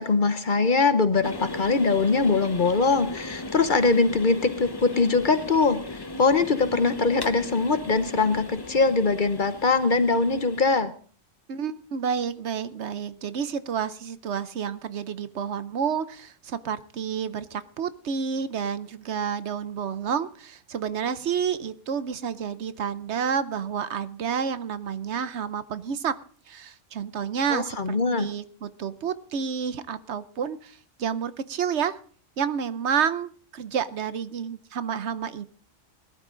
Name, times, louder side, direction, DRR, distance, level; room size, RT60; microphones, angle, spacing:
voice 1, 0.0-10.9 27.5-28.3, left 4 dB, 45° left, 11 dB, 1.1 m, -22 dB
sound 1, 1.2-10.8, left 2 dB, 25° left, 0.8 m, -38 dB
voice 2, 11.5-26.2 26.5-32.0 32.4-35.4, right 7 dB, 70° right, 14 dB, 1.0 m, -30 dB
18.5 x 12.0 x 3.8 m, 0.43 s
omnidirectional pair, 1.2 m